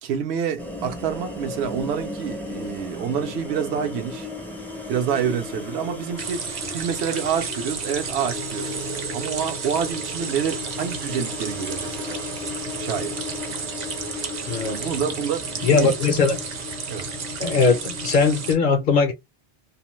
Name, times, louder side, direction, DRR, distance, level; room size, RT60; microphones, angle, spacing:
voice 1, 0.0-4.3 4.9-6.4 6.7-8.8 9.1-12.2 12.8-13.2 14.6-15.9 16.9-17.1, right 8 dB, 75° right, 0.9 m, -27 dB
sound 1, 0.6-18.5, left 2 dB, 5° left, 0.4 m, -35 dB
sound 2, 6.2-18.6, right 6 dB, 50° right, 0.5 m, -33 dB
voice 2, 14.5-14.9 15.6-16.4 17.4-19.1, left 4 dB, 55° left, 0.6 m, -20 dB
2.5 x 2.1 x 2.9 m
omnidirectional pair, 1.2 m